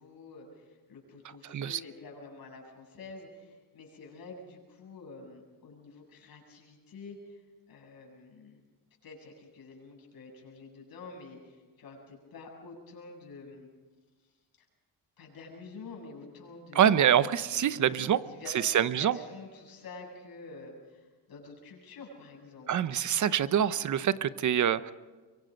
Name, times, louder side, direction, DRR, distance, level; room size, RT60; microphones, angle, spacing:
voice 1, 0.0-7.4 7.7-8.6 9.0-13.7 14.2-14.3 14.6-14.7 15.2-22.9, left 3 dB, 60° left, 0 dB, 7.9 m, -48 dB
voice 2, 1.5-1.8 16.7-18.2 18.6-19.2 22.7-24.9, right 9 dB, 45° right, 15 dB, 0.8 m, -25 dB
24.5 x 23.5 x 5.3 m, 1.3 s
cardioid pair, 130°, 41 cm